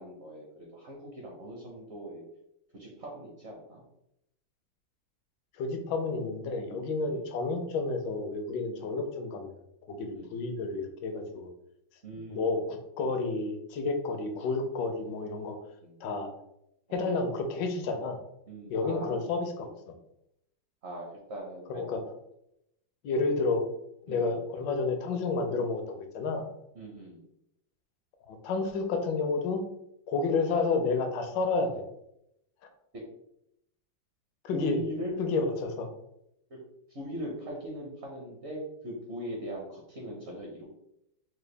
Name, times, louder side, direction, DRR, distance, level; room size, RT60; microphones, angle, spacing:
voice 1, 0.0-2.2 2.7-3.8 7.1-7.3 8.8-8.9 10.1-10.4 12.0-12.6 14.0-14.1 15.8-16.0 16.9-17.1 18.5-19.3 20.8-21.9 24.1-24.4 26.7-27.2 32.9-33.0 34.5-35.2 36.5-36.6 36.9-40.6, equal, 55° right, -1 dB, 0.8 m, -40 dB
voice 2, 5.6-9.5 9.9-11.5 12.3-15.6 16.0-16.3 16.9-18.2 18.7-19.7 21.7-22.0 23.0-23.7 24.1-26.4 28.3-29.6 30.1-31.8 34.4-34.8 35.2-35.9, left 3 dB, 75° left, 5 dB, 1.3 m, -30 dB
4.7 x 2.2 x 3.2 m, 0.79 s
omnidirectional pair, 2.1 m